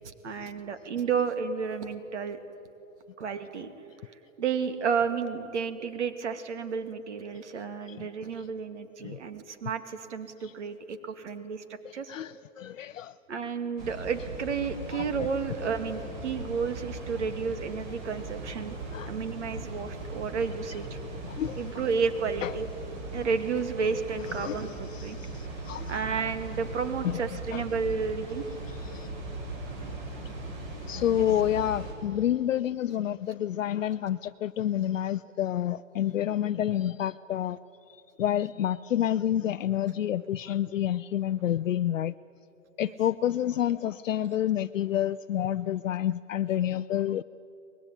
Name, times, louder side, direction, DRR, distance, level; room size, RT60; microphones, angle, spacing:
voice 1, 0.0-2.4 3.2-3.7 4.4-11.6 11.9-12.1 13.3-18.8 19.1-20.9 21.6-22.7 23.1-25.2 25.9-28.4 31.2-31.3 42.8-42.9, right 5 dB, 60° right, 9 dB, 2.4 m, -31 dB
voice 2, 12.1-13.1 14.9-15.0 18.9-19.1 21.2-21.6 22.4-22.5 24.4-24.5 24.9-26.0 27.0-27.2 27.5-27.6 28.9-29.1 30.9-37.6 38.2-42.1 42.8-47.2, left 11 dB, 70° left, 10 dB, 0.6 m, -28 dB
Water, 13.8-31.9, right 2 dB, 35° right, 5.7 m, -39 dB
24.0 x 20.5 x 9.9 m, 2.7 s
hypercardioid pair, 165°, 40 cm